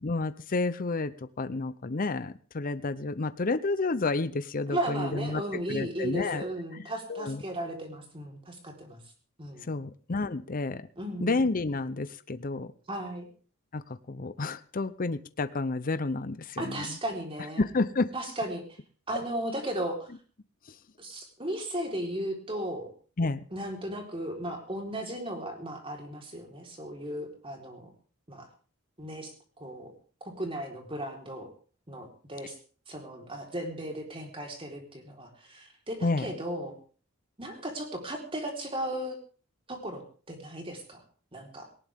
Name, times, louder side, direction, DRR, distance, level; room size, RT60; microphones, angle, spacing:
voice 1, 0.0-6.4 7.1-7.4 9.7-10.8 11.2-12.7 13.7-17.0 17.6-18.1 23.2-23.5 36.0-36.3, left 3 dB, 40° left, 13 dB, 0.7 m, -30 dB
voice 2, 4.7-9.0 9.4-9.7 11.0-11.5 12.9-13.3 16.6-17.6 18.1-18.6 19.1-20.1 21.0-22.9 23.5-27.9 28.3-28.5 29.0-29.9 30.4-31.5 31.9-32.5 32.9-36.7 37.4-39.2 39.7-40.0 40.3-41.0 41.3-41.7, right 1 dB, 25° right, 2 dB, 4.1 m, -36 dB
18.5 x 18.0 x 3.6 m, 0.41 s
head